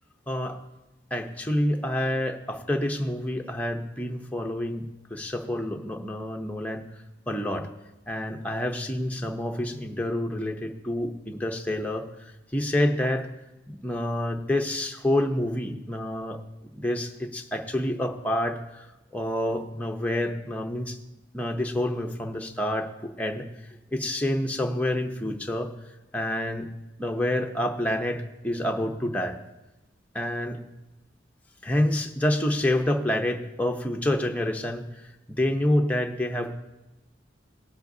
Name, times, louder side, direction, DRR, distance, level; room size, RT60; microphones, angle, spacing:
voice 1, 0.3-0.6 1.1-6.8 7.3-7.7 8.1-13.3 13.7-16.4 16.7-18.9 19.1-21.0 21.3-22.9 23.2-23.5 23.9-25.7 26.1-26.7 27.0-29.4 30.1-30.6 31.6-34.9 35.3-36.5, left 1 dB, 10° left, 2 dB, 0.7 m, -28 dB
18.0 x 7.8 x 2.7 m, 1.0 s
head